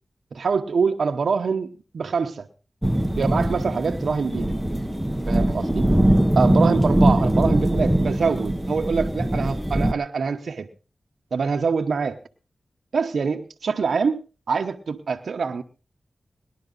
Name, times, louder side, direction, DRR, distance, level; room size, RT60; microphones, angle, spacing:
voice 1, 0.3-1.7 1.9-2.5 3.2-4.5 5.3-5.9 6.3-10.7 11.3-12.2 12.9-14.2 14.5-15.6, right 5 dB, 85° right, 6 dB, 0.9 m, -24 dB
sound 1, 2.8-9.9, right 1 dB, 5° right, 0.9 m, -21 dB
19.0 x 11.5 x 3.9 m, 0.33 s
cardioid pair, 65°, 0 cm